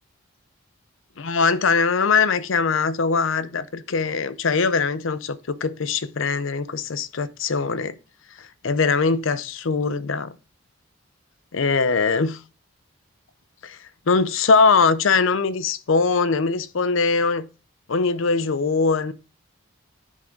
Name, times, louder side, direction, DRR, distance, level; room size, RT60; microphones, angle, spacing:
voice 1, 1.2-7.9 8.4-10.3 11.5-12.4 13.6-13.8 14.1-17.5 17.9-19.1, left 4 dB, 70° left, 0.6 m, -21 dB
10.0 x 3.7 x 4.5 m
head